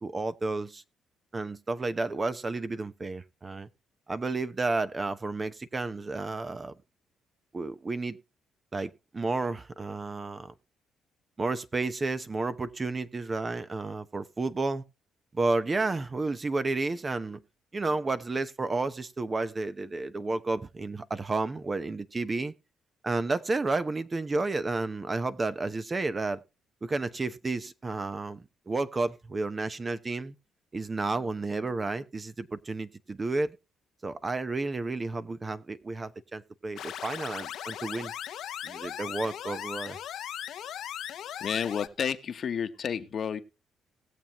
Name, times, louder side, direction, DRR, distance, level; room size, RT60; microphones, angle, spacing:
voice 1, 0.0-0.8 1.3-3.7 4.1-6.7 7.5-8.2 8.7-10.5 11.4-14.8 15.3-17.4 17.7-22.5 23.0-26.4 26.8-30.3 30.7-33.6 34.0-38.1 38.6-40.0, right 3 dB, 30° right, 0.9 m, -31 dB
sound 1, 36.8-41.9, left 10 dB, 75° left, 0.9 m, -38 dB
voice 2, 41.4-43.4, left 7 dB, 55° left, 1.2 m, -31 dB
19.5 x 7.2 x 3.0 m
cardioid pair, 90°, 0 cm